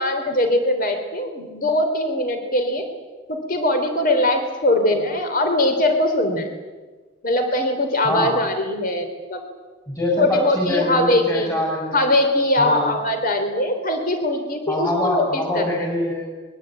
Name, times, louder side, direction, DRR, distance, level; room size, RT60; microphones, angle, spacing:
voice 1, 0.0-2.9 3.3-6.5 7.2-9.4 10.2-11.5 11.9-15.8, left 1 dB, 50° left, 6 dB, 3.4 m, -21 dB
voice 2, 8.0-8.4 9.9-12.1 12.6-12.9 14.7-16.2, left 1 dB, 20° left, -3 dB, 6.8 m, -24 dB
24.0 x 22.5 x 9.0 m, 1.3 s
head